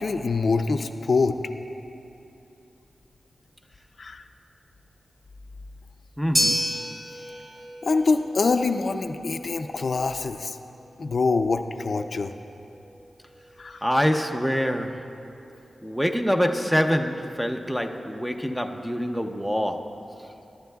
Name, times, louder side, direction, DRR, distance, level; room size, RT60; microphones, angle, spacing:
voice 1, 0.0-1.4 4.0-4.2 7.8-10.6 11.0-12.3 13.6-13.9, left 4 dB, 55° left, 7 dB, 0.4 m, -25 dB
voice 2, 6.2-6.7 13.8-15.1 15.8-19.9, equal, 5° right, 5 dB, 0.6 m, -25 dB
sound 1, 6.3-14.7, equal, 25° right, 0.9 m, -33 dB
22.0 x 11.5 x 2.3 m, 2.8 s
wide cardioid pair, 115°, 0 cm